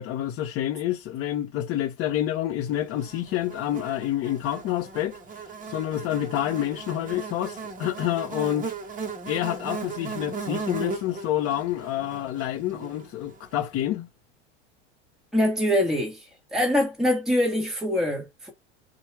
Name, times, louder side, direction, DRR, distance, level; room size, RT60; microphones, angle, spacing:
voice 1, 0.0-8.7 9.3-14.1, left 12 dB, 45° left, 0.8 m, -28 dB
Buzz, 3.0-13.4, right 4 dB, 25° right, 1.0 m, -37 dB
voice 2, 15.3-18.5, left 1 dB, ahead, 1.2 m, -24 dB
4.4 x 2.3 x 3.2 m
supercardioid pair, 115°, 33 cm